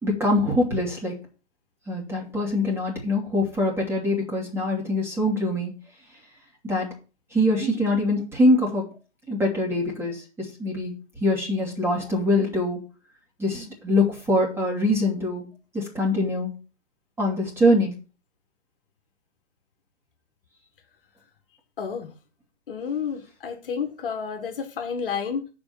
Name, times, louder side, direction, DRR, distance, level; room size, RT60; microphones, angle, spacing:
voice 1, 0.0-1.2 1.9-5.7 6.6-6.9 7.3-8.9 9.3-10.9 11.2-12.8 13.4-15.5 15.7-16.5 17.2-17.9, left 1 dB, 5° right, 2.8 m, -23 dB
voice 2, 21.8-22.1 22.7-25.5, left 6 dB, 50° left, 1.7 m, -30 dB
7.0 x 5.1 x 7.1 m
figure-of-eight pair, 125°, 35 cm